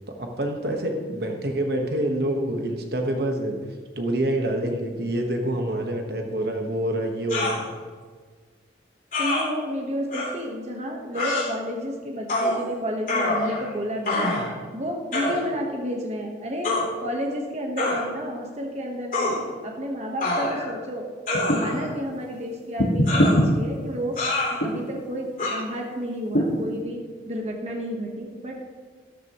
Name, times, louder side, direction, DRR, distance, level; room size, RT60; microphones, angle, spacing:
voice 1, 0.1-3.6 4.0-7.6, right 1 dB, 60° right, 3 dB, 1.4 m, -26 dB
sound 1, 7.3-7.6 9.1-9.4 10.1-10.3 11.1-11.5 12.3-12.6 13.1-13.7 14.0-14.5 15.1-15.4 16.6-16.8 17.8-18.0 19.1-19.4 20.2-20.7 21.3-21.9 23.1-23.4 24.2-24.6 25.4-25.5, left 2 dB, 50° left, 3.4 m, -25 dB
voice 2, 9.2-14.3 14.7-16.7 17.0-19.4 19.6-21.1 21.5-24.2 24.5-28.7, equal, 35° right, 1 dB, 1.3 m, -31 dB
sound 2, 21.3-21.8 22.8-23.5 24.6-24.9 26.3-26.7, equal, 75° left, 1.6 m, -21 dB
13.0 x 13.0 x 3.1 m, 1.5 s
head